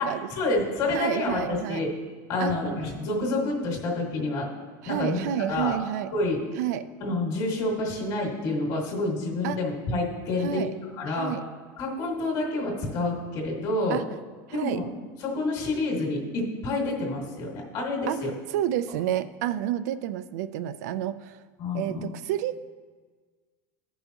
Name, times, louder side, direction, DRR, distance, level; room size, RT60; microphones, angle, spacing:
voice 1, 0.0-1.9 2.3-4.5 4.8-5.8 6.1-6.4 7.0-10.6 10.9-11.3 11.8-14.0 14.5-14.8 15.2-18.3 21.6-22.0, left 2 dB, 45° left, -1 dB, 2.0 m, -28 dB
voice 2, 0.9-1.8 2.4-2.5 4.8-6.1 6.6-6.8 9.4-9.6 10.4-10.7 11.1-11.4 13.9-14.1 14.5-14.8 18.1-18.2 18.5-21.4 21.7-22.6, right 11 dB, 85° right, 13 dB, 0.4 m, -29 dB
15.5 x 5.5 x 2.9 m, 1.5 s
supercardioid pair, 155°, 9 cm